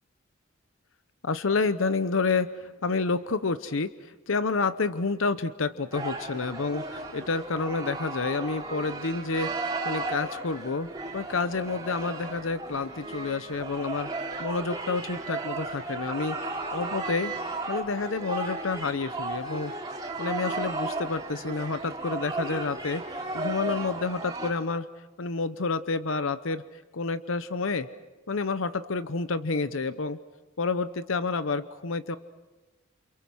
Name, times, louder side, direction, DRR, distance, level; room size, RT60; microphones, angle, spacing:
voice 1, 1.2-10.9 11.1-16.4 16.7-17.3 17.7-19.7 20.2-23.0 23.3-24.9 25.2-26.6 26.9-27.9 28.3-30.2 30.6-32.2, left 4 dB, 70° left, 12 dB, 0.8 m, -29 dB
sound 1, 5.9-24.5, right 2 dB, 20° right, 3.7 m, -35 dB
29.0 x 28.5 x 6.3 m, 1.2 s
head